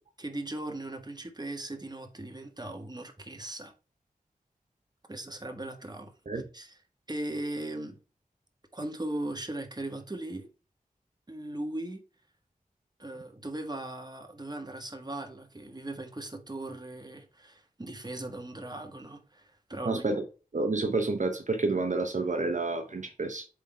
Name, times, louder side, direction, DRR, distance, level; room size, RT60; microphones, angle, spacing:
voice 1, 0.2-3.7 5.1-6.8 7.1-8.0 8.7-10.5 11.3-12.0 13.0-20.0, right 1 dB, 30° right, 1.4 m, -38 dB
voice 2, 19.8-20.2 20.5-23.5, right 3 dB, 55° right, 0.9 m, -29 dB
8.1 x 3.8 x 3.4 m
wide cardioid pair, 45°, 15 cm